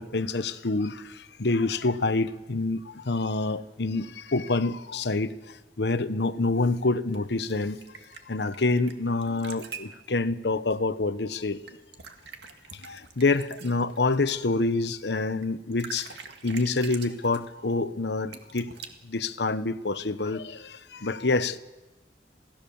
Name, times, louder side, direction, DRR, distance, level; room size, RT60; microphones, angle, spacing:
voice 1, 0.0-7.8 8.3-11.6 12.7-16.2 16.4-18.7 19.0-21.6, left 3 dB, 75° left, 1.0 m, -27 dB
sound 1, 7.1-8.9 9.2-9.9 11.7-14.3 15.4-15.5 15.7-17.5 18.3-18.9, right 6 dB, 85° right, 2.0 m, -44 dB
28.0 x 17.5 x 7.1 m
head